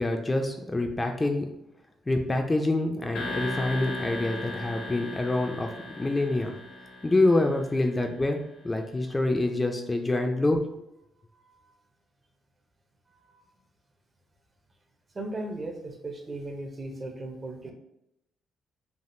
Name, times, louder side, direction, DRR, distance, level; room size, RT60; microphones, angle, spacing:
voice 1, 0.0-1.5 2.1-6.5 7.0-10.6, left 2 dB, 20° left, 4 dB, 0.3 m, -26 dB
sound 1, 3.1-8.1, left 1 dB, 85° left, 0.8 m, -37 dB
voice 2, 13.1-13.5 15.1-17.7, right 2 dB, 35° right, 4 dB, 0.5 m, -37 dB
3.4 x 2.3 x 2.6 m, 0.83 s
cardioid pair, 90°, 0 cm